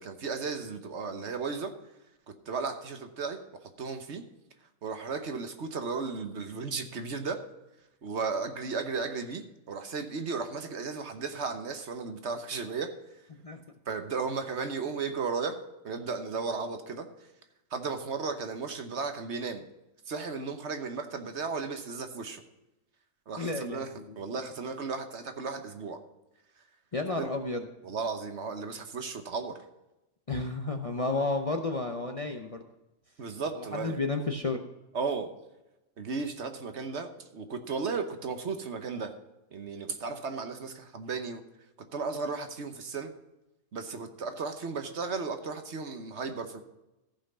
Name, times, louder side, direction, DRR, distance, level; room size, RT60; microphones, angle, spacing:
voice 1, 0.0-1.7 2.5-4.2 4.6-7.4 8.0-12.9 13.9-17.1 17.7-19.6 20.1-22.4 23.3-23.9 24.2-26.0 27.2-27.3 27.8-29.6 33.2-34.0 34.9-35.3 36.0-39.2 39.5-41.4 41.9-43.1 43.7-46.6, right 4 dB, 60° right, 7 dB, 1.3 m, -35 dB
voice 2, 23.4-23.9 26.9-27.7 30.3-32.6 33.5-34.6, left 3 dB, 35° left, 4 dB, 0.7 m, -31 dB
14.5 x 5.7 x 5.4 m, 0.96 s
omnidirectional pair, 1.4 m